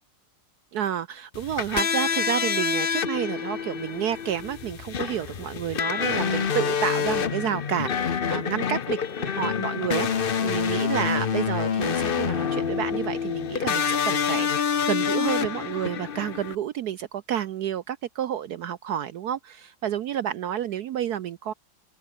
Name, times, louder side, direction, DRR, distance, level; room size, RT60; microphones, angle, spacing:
voice 1, 0.7-21.5, right 10 dB, 75° right, 0.9 m, -30 dB
sound 1, 1.3-16.6, left 7 dB, 75° left, 0.5 m, -27 dB
open air
omnidirectional pair, 2.3 m